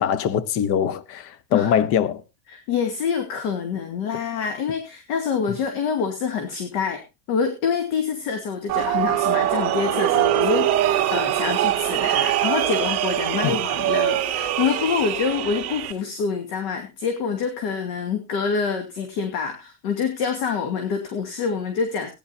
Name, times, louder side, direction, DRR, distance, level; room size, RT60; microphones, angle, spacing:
voice 1, 0.0-2.2 13.4-13.6, left 9 dB, 35° left, 0.8 m, -22 dB
voice 2, 2.5-7.0 7.3-22.1, left 6 dB, 55° left, 2.4 m, -26 dB
sound 1, 8.7-15.9, right 13 dB, 35° right, 2.3 m, -23 dB
18.0 x 10.5 x 2.7 m
supercardioid pair, 150°, 42 cm